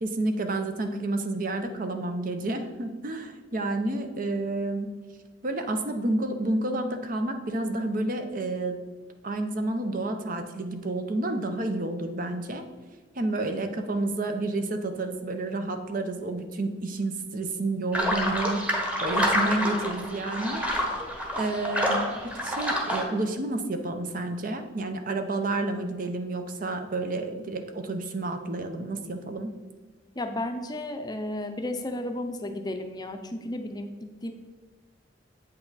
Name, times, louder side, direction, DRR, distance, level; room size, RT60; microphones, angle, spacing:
voice 1, 0.0-4.9 5.4-8.8 9.2-12.6 13.1-20.6 21.4-29.5, right 2 dB, 50° right, 7 dB, 0.8 m, -30 dB
sound 1, 17.9-23.0, equal, 10° right, 1.2 m, -28 dB
voice 2, 30.2-34.3, left 1 dB, 20° left, 6 dB, 0.6 m, -33 dB
8.2 x 5.7 x 4.0 m, 1.3 s
head